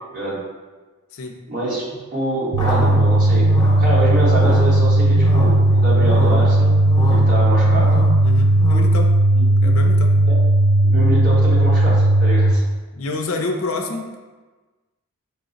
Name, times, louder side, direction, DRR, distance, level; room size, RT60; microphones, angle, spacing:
voice 1, 1.5-3.5 3.8-6.8 7.1-7.9 9.3-9.7 10.3-10.4 10.8-12.6, right 1 dB, 40° right, -7 dB, 1.1 m, -25 dB
sound 1, 2.5-8.8, equal, 20° left, 0.7 m, -28 dB
sound 2, 2.5-12.5, right 1 dB, 85° right, 0.4 m, -15 dB
voice 2, 8.2-9.1 9.6-10.2 12.9-14.2, left 3 dB, 70° left, 3 dB, 0.4 m, -27 dB
4.6 x 2.0 x 3.8 m, 1.3 s
head